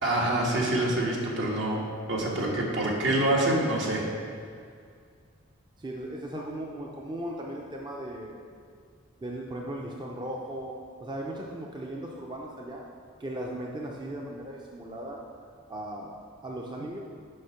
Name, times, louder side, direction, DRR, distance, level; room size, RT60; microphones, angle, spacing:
voice 1, 0.0-4.1, right 1 dB, 65° right, -2 dB, 1.4 m, -26 dB
voice 2, 5.8-8.4 9.2-10.7 11.0-12.8 13.2-15.2 15.7-16.1 16.4-17.0, right 1 dB, 20° right, -1 dB, 0.5 m, -37 dB
6.4 x 5.1 x 5.7 m, 2.2 s
head